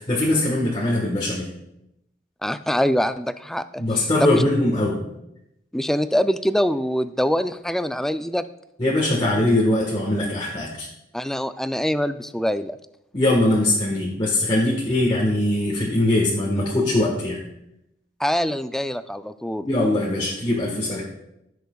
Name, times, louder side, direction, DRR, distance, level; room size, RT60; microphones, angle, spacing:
voice 1, 0.0-1.5 3.8-5.1 8.8-10.9 13.1-17.4 19.6-21.0, left 1 dB, 30° left, -4 dB, 1.4 m, -21 dB
voice 2, 2.4-3.8 4.2-4.4 5.7-8.4 11.1-12.8 14.6-14.8 18.2-19.7, equal, 5° left, 11 dB, 0.3 m, -24 dB
16.0 x 6.6 x 2.3 m, 0.83 s
head